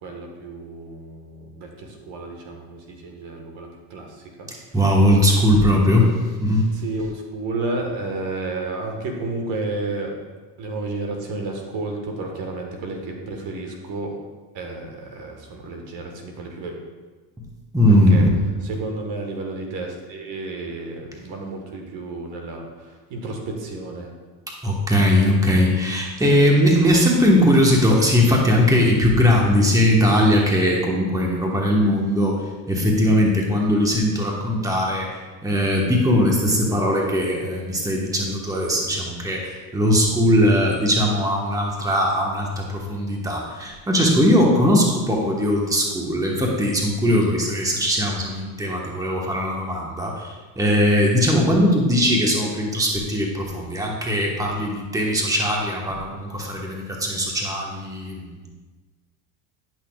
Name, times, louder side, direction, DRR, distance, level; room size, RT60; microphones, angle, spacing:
voice 1, 0.0-4.5 6.7-10.1 10.6-14.1 14.5-16.8 18.1-18.2 18.6-24.1, right 2 dB, 65° right, 2 dB, 1.5 m, -31 dB
voice 2, 4.7-6.1 6.4-6.7 17.7-18.3 24.6-32.4 32.7-58.5, equal, 5° right, -1 dB, 1.2 m, -19 dB
10.0 x 6.0 x 2.3 m, 1.3 s
supercardioid pair, 95°, 49 cm